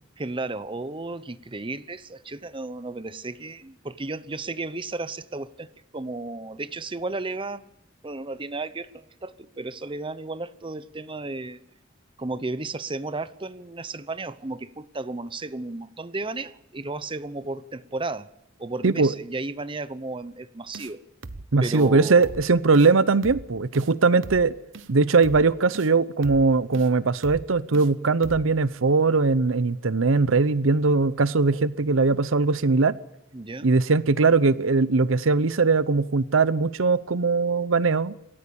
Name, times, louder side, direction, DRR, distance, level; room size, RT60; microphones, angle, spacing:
voice 1, 0.2-7.6 8.0-11.6 12.2-18.3 18.6-21.0 21.6-22.3 33.3-33.8, right 2 dB, 25° right, 0.8 m, -34 dB
voice 2, 18.8-19.1 21.5-24.5 24.9-32.9 33.6-38.1, right 4 dB, 90° right, 0.8 m, -20 dB
sound 1, 20.7-20.9 21.2-21.5 21.7-21.9 22.2-22.5 22.7-22.9 23.2-23.5 23.7-23.9 24.2-24.5 24.7-24.9 25.2-25.5 25.7-25.9 26.2-26.5 26.7-26.9 27.2-27.5 27.7-27.9 28.2-28.5, right 3 dB, 70° right, 1.0 m, -39 dB
26.5 x 14.0 x 7.0 m
head